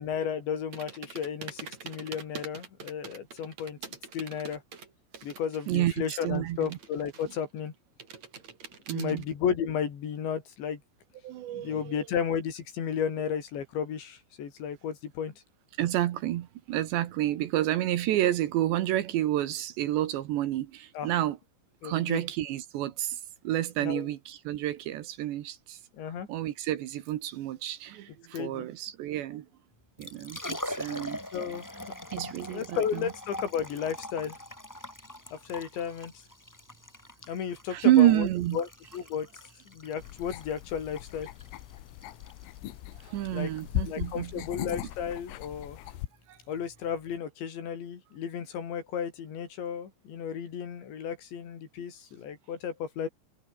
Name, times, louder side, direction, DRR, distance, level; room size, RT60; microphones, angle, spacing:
voice 1, 0.0-4.6 5.2-7.7 8.9-10.8 11.5-15.3 21.0-21.1 21.8-22.2 23.8-24.1 25.9-26.3 28.3-28.7 31.3-31.9 32.5-34.4 35.3-36.2 37.3-38.3 38.5-38.7 38.9-39.3 39.7-41.3 43.3-43.5 43.9-45.8 46.5-53.1, left 8 dB, 60° left, 5.7 m, -33 dB
sound 1, 0.7-5.7 6.0-7.6 8.0-9.2, right 6 dB, 40° right, 4.0 m, -44 dB
voice 2, 5.7-6.8 8.9-9.2 11.2-12.1 15.8-21.4 21.8-25.8 26.3-29.5 30.0-31.2 32.1-33.1 37.7-38.6 43.0-44.8 46.3-46.4, right 13 dB, 70° right, 3.1 m, -29 dB
Liquid, 29.8-47.2, left 1 dB, 15° left, 0.7 m, -44 dB
sound 2, 40.0-46.1, left 15 dB, 85° left, 4.0 m, -38 dB
omnidirectional pair, 5.9 m